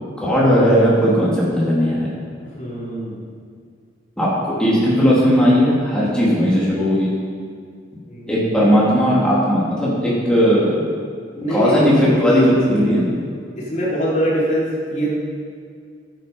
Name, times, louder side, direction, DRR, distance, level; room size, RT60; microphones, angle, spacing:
voice 1, 0.2-2.1 4.2-7.1 8.3-10.8 11.5-13.2, equal, 5° left, -7 dB, 3.2 m, -17 dB
voice 2, 2.6-3.2 8.1-8.5 11.4-11.9 13.6-15.2, right 1 dB, 40° left, -6 dB, 3.5 m, -23 dB
12.0 x 9.0 x 5.5 m, 2.2 s
head